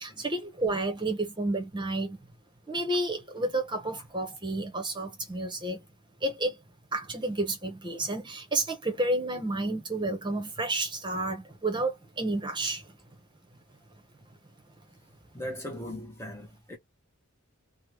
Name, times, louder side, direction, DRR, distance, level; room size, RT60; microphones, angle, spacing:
voice 1, 0.0-2.2 2.7-5.8 6.2-6.6 6.9-12.8, right 2 dB, 20° right, 0.9 m, -30 dB
voice 2, 15.3-16.8, equal, 10° left, 0.8 m, -38 dB
3.5 x 2.2 x 3.0 m
head